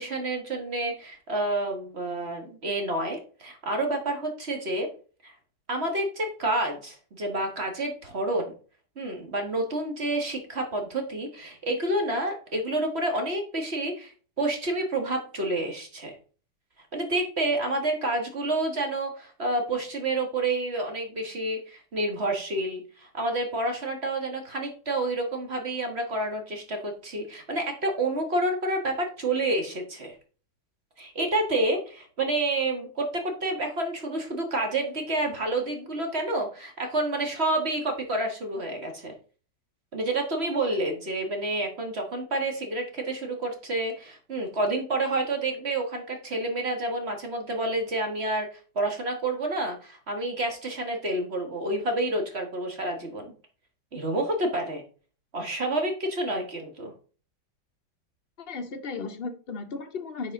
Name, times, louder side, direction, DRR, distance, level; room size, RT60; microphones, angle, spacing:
voice 1, 0.0-4.9 5.2-5.3 5.7-8.5 9.0-14.1 14.4-16.1 16.9-30.1 31.0-39.1 39.9-53.3 53.9-54.8 55.3-56.9, right 2 dB, 40° right, 1.7 m, -29 dB
voice 2, 58.4-60.3, left 4 dB, 45° left, 0.8 m, -35 dB
9.5 x 4.8 x 3.7 m
omnidirectional pair, 1.9 m